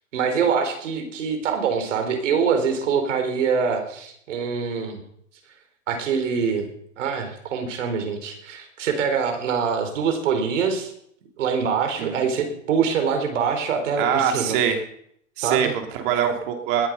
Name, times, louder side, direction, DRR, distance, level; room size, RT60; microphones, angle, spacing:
voice 1, 0.1-5.0 5.9-6.7 7.0-10.9 11.4-14.6 15.4-15.7, right 6 dB, 70° right, 6 dB, 4.5 m, -24 dB
voice 2, 14.0-14.8 15.4-16.9, right 8 dB, 40° right, 4 dB, 3.1 m, -23 dB
20.0 x 9.9 x 5.5 m, 0.69 s
hypercardioid pair, 145°, 38 cm